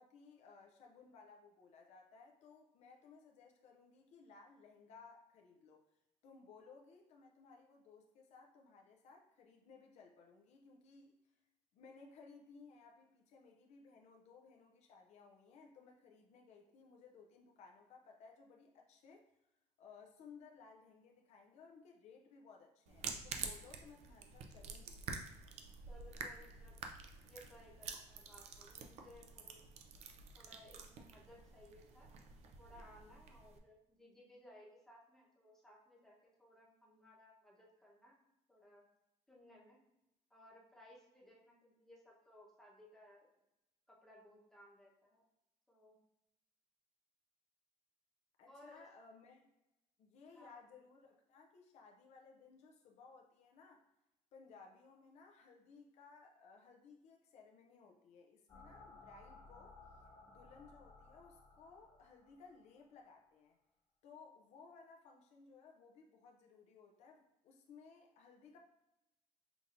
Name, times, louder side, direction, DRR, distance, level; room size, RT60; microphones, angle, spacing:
voice 1, 0.0-5.8 6.2-11.1 11.7-19.3 19.8-25.0 48.4-49.5 50.0-53.9 54.3-59.8 60.3-63.6 64.0-68.6, left 5 dB, 65° left, 2 dB, 0.5 m, -60 dB
sound 1, 22.9-33.6, right 5 dB, 60° right, 0.5 m, -49 dB
voice 2, 25.9-26.9 27.2-29.6 30.3-32.1 32.6-38.2 38.5-38.8 39.3-39.8 40.3-43.3 43.9-45.2 45.7-46.0 48.5-48.9 50.3-50.5, left 1 dB, 5° left, -4 dB, 1.0 m, -61 dB
sound 2, 58.5-63.1, left 3 dB, 30° left, 1.3 m, -60 dB
5.7 x 2.7 x 2.5 m, 0.92 s
cardioid pair, 140°, 12 cm